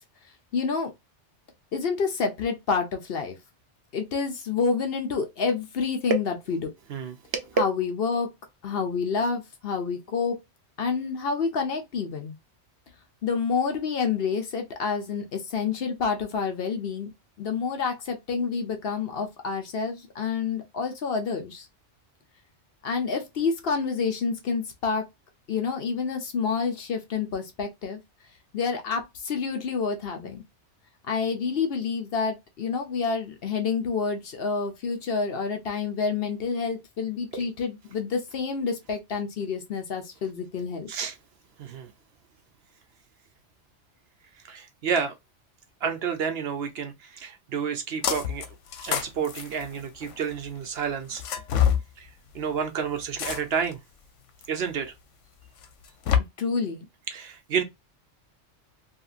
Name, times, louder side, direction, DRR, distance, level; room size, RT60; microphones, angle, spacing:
voice 1, 0.5-0.9 1.7-3.4 3.9-6.7 7.6-8.3 8.6-10.4 10.8-12.4 13.2-17.1 17.4-21.7 22.8-25.0 25.5-28.0 28.5-30.4 31.1-40.9 56.4-56.9, left 5 dB, 60° left, 0.8 m, -28 dB
voice 2, 6.9-7.6 37.3-37.5 40.9-41.1 41.6-41.9 44.4-45.1 45.8-48.5 48.8-51.2 52.0-52.1 52.3-53.8 54.5-54.9 57.1-57.6, right 6 dB, 65° right, 0.8 m, -30 dB
sound 1, 48.0-48.5 48.7-50.3 51.1-51.8 53.2-53.7 54.4-54.5 55.6-56.2, left 9 dB, 90° left, 1.0 m, -26 dB
2.9 x 2.7 x 2.4 m
omnidirectional pair, 1.2 m